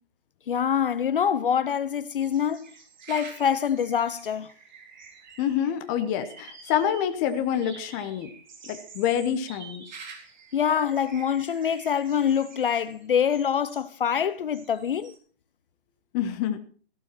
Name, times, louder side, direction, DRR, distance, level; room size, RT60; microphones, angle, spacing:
voice 1, 0.5-2.7 3.1-4.5 10.5-15.1, left 8 dB, 60° left, 0.7 m, -25 dB
sound 1, 2.2-13.9 14.5-15.2, right 5 dB, 45° right, 3.6 m, -48 dB
voice 2, 5.4-8.3 8.6-9.8 16.1-16.6, left 9 dB, 15° left, 0.9 m, -27 dB
15.5 x 12.0 x 4.5 m
hypercardioid pair, 145°, 31 cm